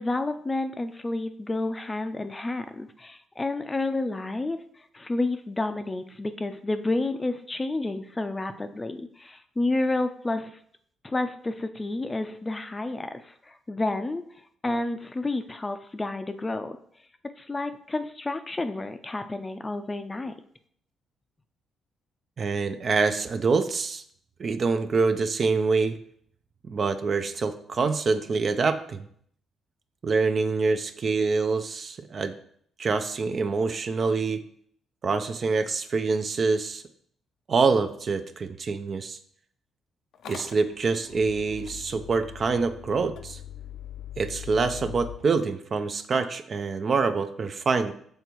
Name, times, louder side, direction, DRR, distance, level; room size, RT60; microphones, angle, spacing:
voice 1, 0.0-10.6 11.0-14.2 14.6-16.8 17.4-20.3, left 2 dB, 20° left, 9 dB, 0.5 m, -30 dB
voice 2, 22.4-24.0 24.4-26.0 26.7-29.1 30.0-32.3 32.8-34.4 35.0-36.8 37.5-39.2 40.3-43.4 44.2-47.9, right 4 dB, 45° right, 9 dB, 0.5 m, -25 dB
Motor vehicle (road) / Engine starting, 40.1-45.2, left 11 dB, 70° left, 0.5 m, -41 dB
6.6 x 3.4 x 4.5 m, 0.64 s
cardioid pair, 90°, 0 cm